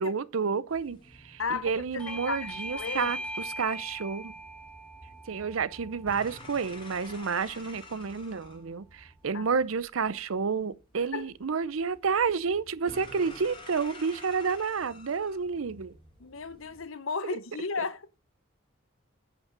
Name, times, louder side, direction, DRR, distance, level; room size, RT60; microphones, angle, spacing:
voice 1, 0.0-4.3 5.3-15.9 17.2-17.4, right 5 dB, 80° right, 0.6 m, -30 dB
sound 1, 0.7-16.8, left 2 dB, 25° left, 1.9 m, -51 dB
voice 2, 1.4-3.1 9.3-9.4 11.1-11.3 16.2-18.2, left 5 dB, 75° left, 0.8 m, -35 dB
Bell / Doorbell, 2.0-7.2, right 1 dB, 5° left, 0.5 m, -41 dB
9.5 x 5.3 x 6.2 m
head